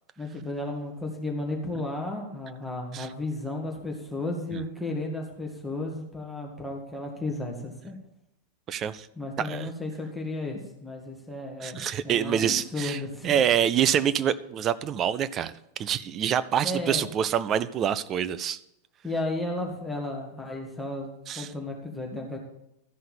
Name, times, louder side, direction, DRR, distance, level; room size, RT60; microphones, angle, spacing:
voice 1, 0.2-8.0 9.2-13.3 16.6-17.1 19.0-21.1 21.4-22.4, left 2 dB, ahead, -1 dB, 2.0 m, -33 dB
voice 2, 8.7-9.1 9.4-9.7 11.6-15.5 15.8-18.6 21.3-21.5, right 9 dB, 30° right, 13 dB, 0.5 m, -26 dB
13.5 x 5.5 x 7.1 m, 0.84 s
figure-of-eight pair, 90°, 0 cm